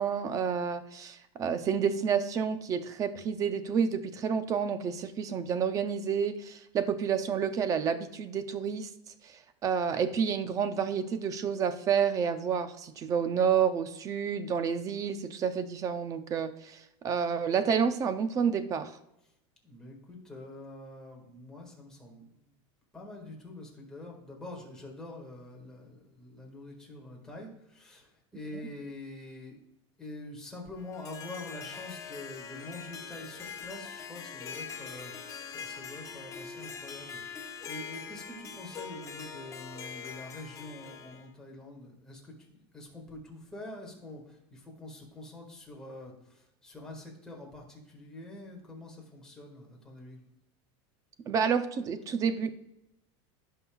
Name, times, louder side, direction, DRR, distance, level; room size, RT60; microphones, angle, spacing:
voice 1, 0.0-8.9 9.2-18.9 51.3-52.5, right 7 dB, 25° right, 10 dB, 0.5 m, -29 dB
voice 2, 19.6-22.5 22.9-29.6 30.0-50.2, left 2 dB, 5° left, -2 dB, 1.8 m, -46 dB
Harp, 30.8-41.3, left 6 dB, 20° left, 0.6 m, -43 dB
16.5 x 5.5 x 2.3 m, 0.87 s
supercardioid pair, 165°, 15 cm